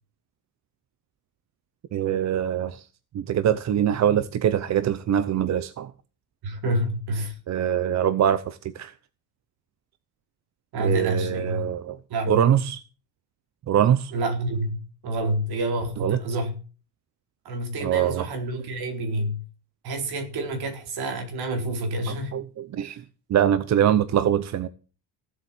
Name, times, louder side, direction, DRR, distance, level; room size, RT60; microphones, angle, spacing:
voice 1, 1.9-2.9 3.1-5.9 7.5-8.9 10.8-12.0 12.3-12.8 13.7-14.1 16.0-16.2 17.8-18.3 22.1-23.0 23.3-24.7, right 10 dB, 40° right, 0.8 m, -23 dB
voice 2, 6.4-7.3 10.7-11.6 12.1-12.6 14.1-16.6 17.4-19.4 19.8-22.4 22.8-23.0, right 1 dB, 65° right, 4.3 m, -28 dB
16.5 x 7.9 x 7.6 m
cardioid pair, 170°, 41 cm